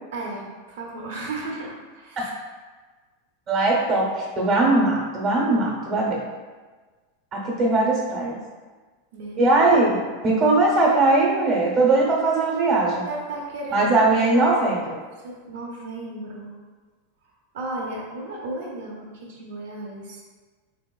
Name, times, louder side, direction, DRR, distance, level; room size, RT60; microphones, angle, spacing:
voice 1, 0.1-2.3 7.7-7.9 8.2-8.5 9.1-9.6 13.0-14.8 15.2-16.6 17.5-20.2, right 2 dB, 80° right, -2 dB, 0.7 m, -35 dB
voice 2, 3.5-6.2 7.3-8.4 9.4-10.0 10.2-13.0 13.7-14.8, right 2 dB, 30° right, -2 dB, 0.8 m, -20 dB
3.4 x 3.0 x 2.3 m, 1.4 s
supercardioid pair, 145°, 0 cm